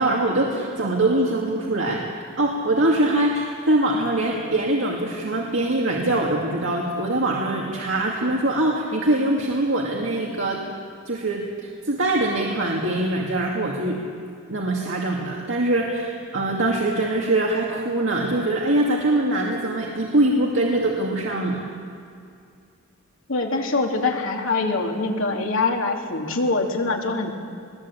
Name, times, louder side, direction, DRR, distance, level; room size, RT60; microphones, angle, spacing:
voice 1, 0.0-2.0 2.4-10.6 11.1-14.0 14.5-21.6, right 1 dB, 65° right, -2 dB, 2.3 m, -23 dB
voice 2, 23.3-27.3, left 3 dB, 75° left, 1 dB, 2.8 m, -24 dB
20.5 x 19.5 x 8.7 m, 2.4 s
head